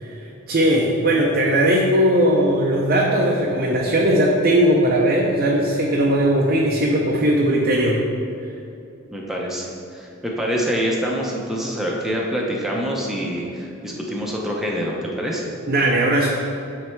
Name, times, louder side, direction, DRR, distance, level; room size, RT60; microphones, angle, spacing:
voice 1, 0.0-8.0 15.6-16.3, right 1 dB, 45° right, -1 dB, 0.5 m, -18 dB
voice 2, 9.1-15.5, equal, ahead, -3 dB, 0.7 m, -26 dB
8.8 x 3.3 x 4.5 m, 2.8 s
head